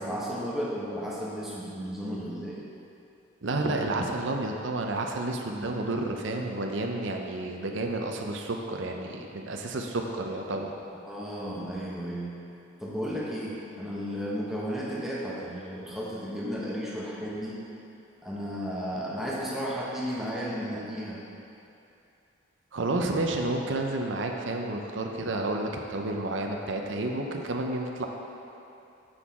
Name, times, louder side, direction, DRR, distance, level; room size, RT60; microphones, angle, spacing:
voice 1, 0.0-2.6 11.0-12.3 12.8-17.6 18.2-21.2, equal, ahead, -7 dB, 1.1 m, -33 dB
voice 2, 3.4-10.7 22.7-28.1, right 2 dB, 65° right, 2 dB, 0.6 m, -30 dB
7.7 x 6.1 x 3.6 m, 2.7 s
head